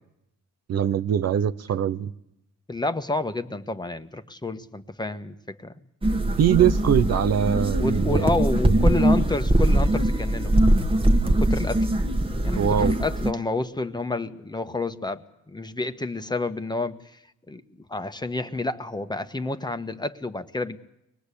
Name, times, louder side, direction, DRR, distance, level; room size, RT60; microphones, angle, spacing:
voice 1, 0.7-2.1 6.4-8.9 12.5-13.0, right 9 dB, 60° right, 13 dB, 0.9 m, -23 dB
voice 2, 2.7-5.7 7.8-10.5 11.2-11.9 12.4-17.1 17.5-17.6 17.9-20.8, left 2 dB, 15° left, 9 dB, 1.4 m, -29 dB
sound 1, 6.0-13.3, right 1 dB, 15° right, 1.6 m, -21 dB
24.0 x 20.0 x 8.5 m, 0.82 s
cardioid pair, 90°, 30 cm